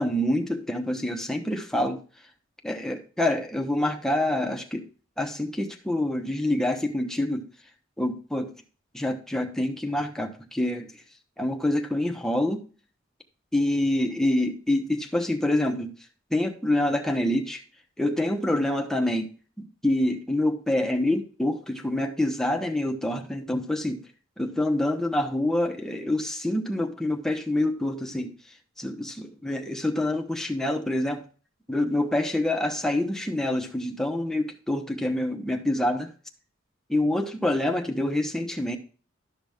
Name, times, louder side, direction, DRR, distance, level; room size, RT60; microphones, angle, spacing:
voice 1, 0.0-2.0 2.6-4.8 5.2-7.5 8.0-8.5 8.9-10.9 11.4-12.6 13.5-15.9 16.3-17.6 18.0-19.3 19.8-24.0 24.4-28.3 28.8-31.2 31.7-36.1 36.9-38.8, left 1 dB, 5° left, 3 dB, 1.0 m, -26 dB
12.0 x 6.0 x 3.5 m, 0.37 s
head